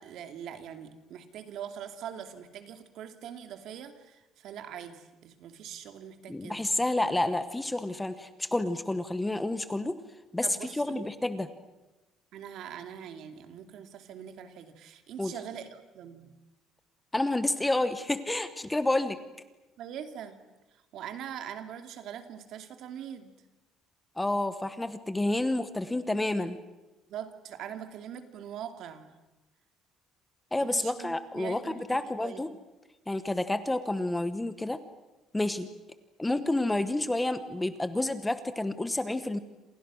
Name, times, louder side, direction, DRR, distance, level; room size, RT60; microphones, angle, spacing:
voice 1, 0.0-6.6 10.4-11.1 12.3-16.3 19.8-20.4 20.9-23.3 27.1-29.1 30.6-32.5, right 9 dB, 55° right, 8 dB, 2.5 m, -42 dB
voice 2, 6.3-10.0 10.3-11.5 15.2-15.3 17.1-19.2 24.2-26.6 30.5-32.5 33.1-34.8 35.3-35.7 36.2-39.4, left 2 dB, 5° left, 11 dB, 1.0 m, -29 dB
28.0 x 27.5 x 6.3 m, 1.1 s
cardioid pair, 170°, 0 cm